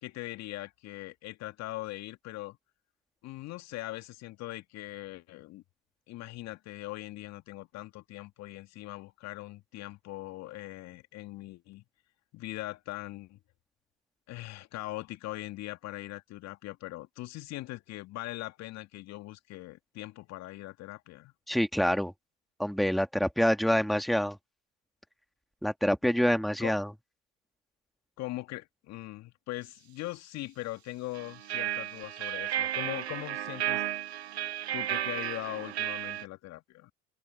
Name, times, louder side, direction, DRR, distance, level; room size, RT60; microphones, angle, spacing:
voice 1, 0.0-2.6 3.2-5.6 6.1-11.8 12.3-13.4 14.3-21.3 26.6-26.8 28.2-33.8 34.7-36.9, left 17 dB, 55° left, 2.3 m, -41 dB
voice 2, 21.5-22.1 22.6-24.4 25.6-26.9, equal, ahead, 2.2 m, -26 dB
sound 1, 31.1-36.2, right 11 dB, 85° right, 1.0 m, -33 dB
open air
hypercardioid pair, 65°, 31 cm